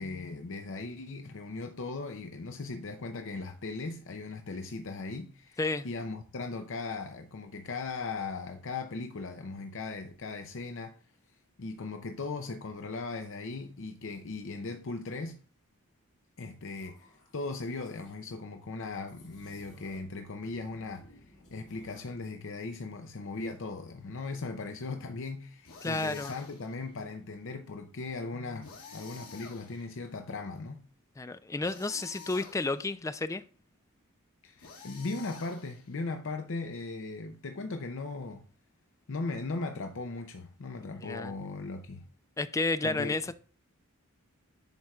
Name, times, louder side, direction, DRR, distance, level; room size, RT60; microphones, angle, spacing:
voice 1, 0.0-11.0 11.6-15.4 16.4-21.2 21.5-30.8 34.4-38.4 39.1-42.0 42.8-43.2, left 3 dB, 60° left, 0.6 m, -38 dB
sound 1, 16.7-18.2 19.0-20.2 20.5-22.2, left 1 dB, 30° left, 2.2 m, -58 dB
sound 2, 25.6-26.8 28.6-30.1 31.6-32.9 34.6-36.0, left 5 dB, 75° left, 2.3 m, -49 dB
voice 2, 25.8-26.3 31.2-33.4 41.0-41.3 42.4-43.3, left 3 dB, 15° left, 0.3 m, -31 dB
10.5 x 4.5 x 2.4 m
head